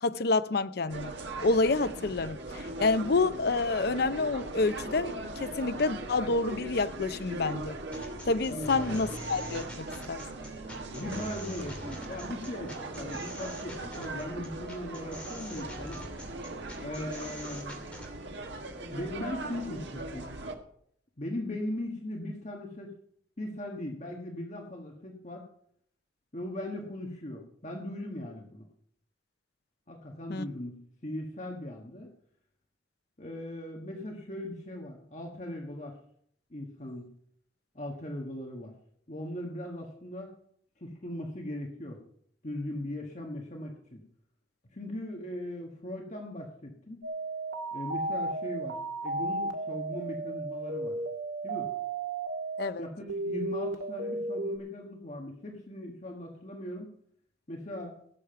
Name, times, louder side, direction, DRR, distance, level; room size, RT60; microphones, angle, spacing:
voice 1, 0.0-1.1 1.4-7.8 8.3-10.3 30.3-30.5 52.6-52.8, left 3 dB, 55° left, 0.6 m, -28 dB
sound 1, 0.9-20.6, right 2 dB, 70° right, 1.6 m, -39 dB
sound 2, 7.9-18.1, equal, 5° left, 2.8 m, -44 dB
voice 2, 10.9-16.0 16.8-17.8 18.9-20.3 21.2-22.9 23.4-25.5 26.3-28.7 29.9-30.8 31.0-32.1 33.2-36.0 36.5-37.1 37.7-38.7 39.1-40.3 40.8-42.0 42.4-44.0 44.7-47.0 47.7-51.0 51.4-51.7 52.8-56.9 57.5-58.0, left 1 dB, 40° left, 1.5 m, -39 dB
sound 3, 47.0-52.7 53.1-54.6, right 2 dB, 90° right, 1.6 m, -34 dB
17.0 x 7.3 x 5.8 m
head